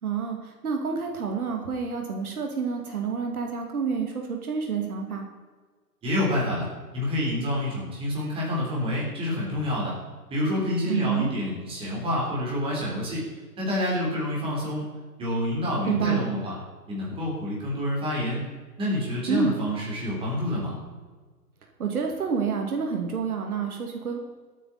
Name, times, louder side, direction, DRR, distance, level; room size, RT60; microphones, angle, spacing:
voice 1, 0.0-5.3 10.9-11.3 15.9-16.3 19.3-19.5 21.8-24.2, right 6 dB, 65° right, 2 dB, 2.6 m, -28 dB
voice 2, 6.0-6.7 6.9-10.0 10.3-13.2 13.6-14.9 15.2-16.5 16.9-18.4 18.8-20.8, left 1 dB, 10° right, -4 dB, 3.8 m, -28 dB
17.5 x 9.2 x 4.3 m, 1.4 s
hypercardioid pair, 150°, 48 cm